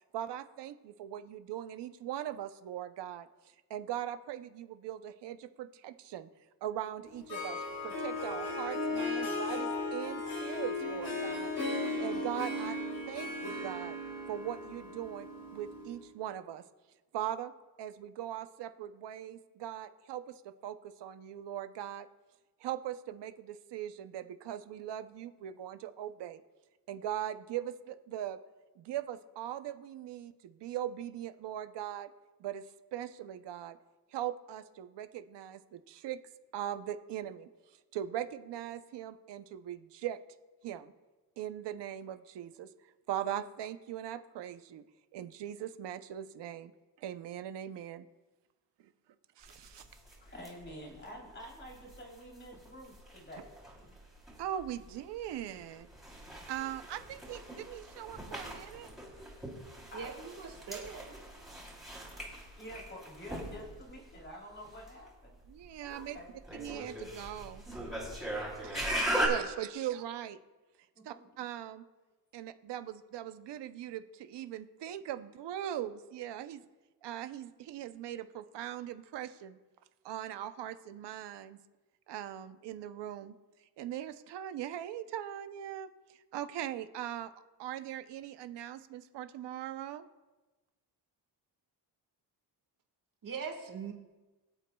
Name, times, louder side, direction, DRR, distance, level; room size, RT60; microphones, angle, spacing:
voice 1, 0.1-6.3 6.6-12.8 13.1-14.0 14.3-16.6 17.1-17.5 17.8-22.1 22.6-26.4 26.9-28.4 28.8-32.1 32.4-33.8 34.1-36.2 36.5-40.2 40.6-40.9 41.4-44.8 45.1-46.7 47.0-48.1 48.8-48.9 49.4-49.8 54.4-55.9 56.5-58.9 65.5-66.2 66.6-67.6 68.6-70.4 71.0-71.8 72.3-76.6 77.0-79.6 80.0-81.6 82.1-87.3 87.6-90.1, right 11 dB, 90° right, 10 dB, 0.7 m, -40 dB
Harp, 7.0-16.0, left 2 dB, 65° left, 4.2 m, -36 dB
sound 1, 49.4-69.3, right 1 dB, ahead, 3.2 m, -40 dB
voice 2, 49.7-53.5 56.4-56.7 59.9-60.1 62.4-65.4 65.8-66.4 68.0-68.5 70.9-71.3, equal, 30° left, -2 dB, 3.3 m, -49 dB
voice 3, 59.9-61.2 93.2-93.9, right 6 dB, 55° right, 2 dB, 1.7 m, -41 dB
24.5 x 8.1 x 2.3 m, 1.2 s
cardioid pair, 130°, 40 cm